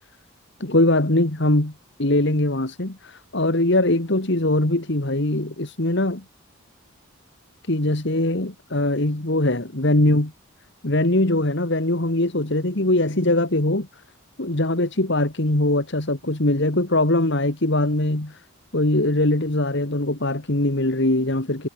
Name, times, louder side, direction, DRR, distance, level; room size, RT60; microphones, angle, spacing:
voice 1, 0.6-1.7 2.0-6.2 7.7-10.3 10.8-13.9 14.4-18.4 18.7-21.7, left 1 dB, 55° left, 2.0 m, -21 dB
head